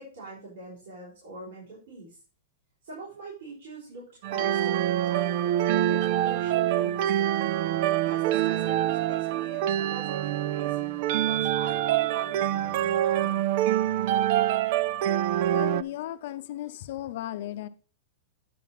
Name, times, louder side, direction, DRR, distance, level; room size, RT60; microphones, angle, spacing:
voice 1, 0.0-2.2 2.8-7.3 8.0-13.7, right 2 dB, 70° right, -5 dB, 4.1 m, -44 dB
sound 1, 4.2-15.8, right 12 dB, 45° right, 0.4 m, -25 dB
voice 2, 15.5-17.7, left 13 dB, 50° left, 13 dB, 0.6 m, -35 dB
9.2 x 5.6 x 4.3 m, 0.38 s
supercardioid pair, 175°, 0 cm